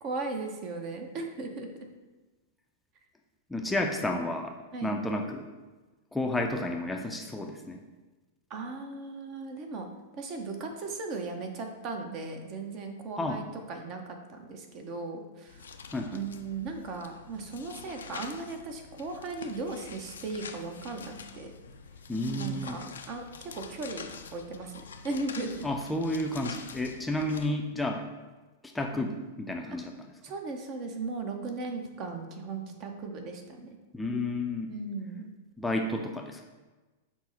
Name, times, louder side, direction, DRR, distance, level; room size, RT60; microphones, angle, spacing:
voice 1, 0.0-1.7 4.7-4.9 8.5-9.8 10.2-15.6 16.1-21.5 22.3-25.6 30.2-33.8 34.7-35.3, right 3 dB, 40° right, 4 dB, 0.7 m, -37 dB
voice 2, 3.5-4.5 4.8-5.5 6.1-7.8 13.2-13.4 15.9-16.2 22.1-22.8 25.6-28.1 28.7-29.9 33.9-34.8 35.6-36.4, left 1 dB, 5° left, 1 dB, 0.4 m, -31 dB
sound 1, 15.5-27.5, left 5 dB, 80° left, 0.4 m, -46 dB
6.0 x 2.0 x 3.9 m, 1.2 s
hypercardioid pair, 105°, 0 cm